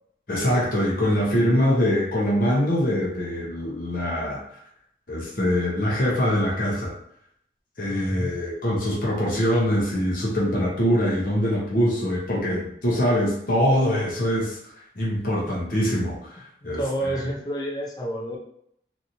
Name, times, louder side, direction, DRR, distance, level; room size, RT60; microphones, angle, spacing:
voice 1, 0.3-4.4 5.1-6.9 7.8-14.6 15.0-16.8, equal, 50° left, -5 dB, 0.8 m, -23 dB
voice 2, 7.9-8.3 16.6-18.4, right 1 dB, 20° left, -2 dB, 0.5 m, -29 dB
2.9 x 2.6 x 2.7 m, 0.72 s
head